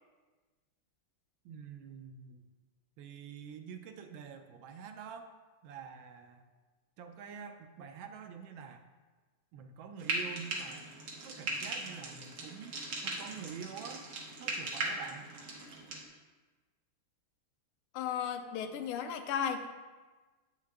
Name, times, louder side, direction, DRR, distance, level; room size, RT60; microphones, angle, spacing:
voice 1, 1.4-2.5 3.0-5.3 5.6-6.4 7.0-8.8 9.5-10.9 11.2-12.8 13.0-14.0 14.4-15.3, right 7 dB, 75° right, 6 dB, 1.2 m, -47 dB
Frying (food), 10.0-16.0, right 2 dB, 60° right, 1.6 m, -39 dB
voice 2, 17.9-19.7, left 8 dB, 85° left, 7 dB, 1.5 m, -35 dB
8.1 x 6.5 x 3.4 m, 1.3 s
omnidirectional pair, 2.4 m